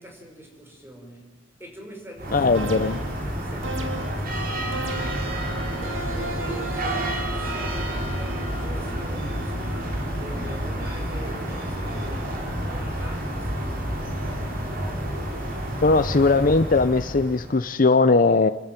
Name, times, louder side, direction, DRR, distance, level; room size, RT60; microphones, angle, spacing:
voice 1, 0.0-14.5, equal, 10° right, 2 dB, 5.4 m, -44 dB
sound 1, 2.2-17.7, equal, 50° right, 4.5 m, -29 dB
voice 2, 2.3-3.0 15.8-18.5, left 3 dB, 45° left, 12 dB, 0.7 m, -19 dB
sound 2, 2.5-3.2 3.6-4.3 4.7-5.4 5.8-7.4, right 2 dB, 85° right, 2.3 m, -35 dB
28.5 x 12.5 x 9.2 m, 1.2 s
head